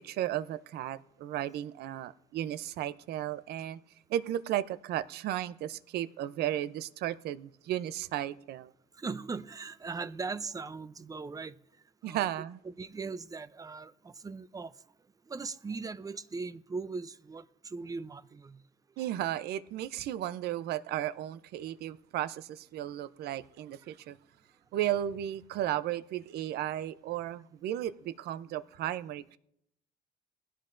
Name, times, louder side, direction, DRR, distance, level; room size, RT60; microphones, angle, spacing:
voice 1, 0.0-3.8 4.1-8.7 12.0-12.6 19.0-24.2 24.7-29.4, right 12 dB, 70° right, 0.6 m, -34 dB
voice 2, 9.0-11.5 12.0-12.2 12.6-14.7 15.3-18.6, right 4 dB, 20° right, 0.5 m, -39 dB
20.5 x 16.0 x 2.6 m
cardioid pair, 110°, 17 cm